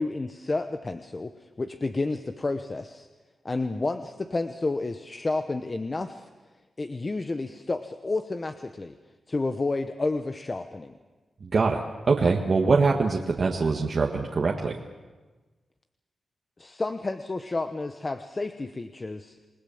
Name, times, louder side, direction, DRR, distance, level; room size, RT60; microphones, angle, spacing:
voice 1, 0.0-3.1 3.4-6.3 6.8-9.0 9.3-10.9 16.6-19.4, left 3 dB, 30° left, 8 dB, 1.0 m, -30 dB
voice 2, 11.4-14.8, right 4 dB, 50° right, 0 dB, 1.7 m, -23 dB
27.5 x 19.5 x 7.2 m, 1.3 s
wide cardioid pair, 100°, 0 cm